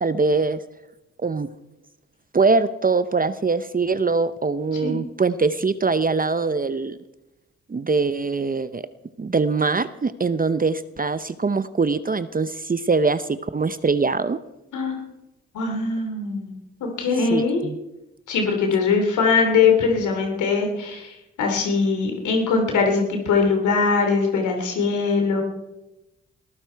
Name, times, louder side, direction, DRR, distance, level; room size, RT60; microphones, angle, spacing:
voice 1, 0.0-0.6 1.2-1.5 2.3-7.0 7.7-8.8 9.2-14.4 17.3-17.8, right 4 dB, 30° right, 13 dB, 0.7 m, -22 dB
voice 2, 15.5-17.7 18.3-25.4, left 4 dB, 85° left, 3 dB, 3.0 m, -21 dB
20.0 x 14.5 x 4.6 m, 0.96 s
cardioid pair, 60°, 29 cm